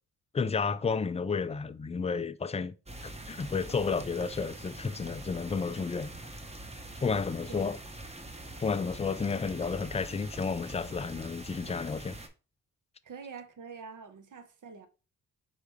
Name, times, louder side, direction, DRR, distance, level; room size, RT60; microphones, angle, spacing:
voice 1, 0.3-2.7 3.0-6.1 7.0-7.8 8.6-12.2, left 5 dB, 20° left, 0.4 m, -31 dB
sound 1, 2.9-12.3, right 1 dB, 15° right, 1.0 m, -44 dB
voice 2, 13.0-14.9, right 5 dB, 55° right, 1.0 m, -45 dB
4.6 x 3.2 x 3.4 m
supercardioid pair, 40°, 38 cm